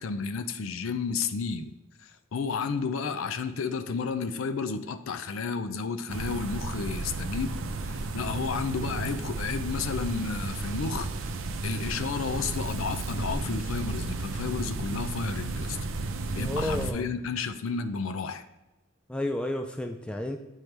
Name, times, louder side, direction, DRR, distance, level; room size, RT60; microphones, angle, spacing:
voice 1, 0.0-1.7 2.0-11.3 11.6-15.8 16.3-18.4, left 5 dB, 85° left, 10 dB, 0.5 m, -32 dB
sound 1, 6.1-16.9, right 3 dB, 75° right, 0.6 m, -33 dB
voice 2, 16.4-17.1 19.1-20.4, left 1 dB, 5° left, 4 dB, 0.3 m, -31 dB
8.7 x 4.5 x 3.3 m, 1.1 s
head